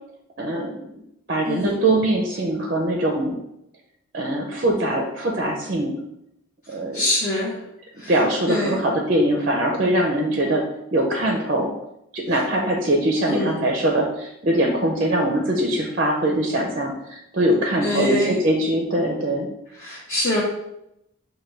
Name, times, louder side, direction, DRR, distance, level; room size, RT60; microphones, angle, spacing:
voice 1, 0.4-0.9 1.3-3.3 4.1-5.9 6.7-7.0 8.1-10.6 10.9-11.7 12.1-19.5, right 1 dB, 40° right, 1 dB, 0.5 m, -22 dB
voice 2, 1.5-1.8 6.9-7.5 8.0-8.1 8.5-8.8 13.3-13.5 17.8-18.4 19.8-20.4, left 1 dB, 35° left, -7 dB, 0.7 m, -24 dB
5.6 x 2.2 x 3.2 m, 0.83 s
head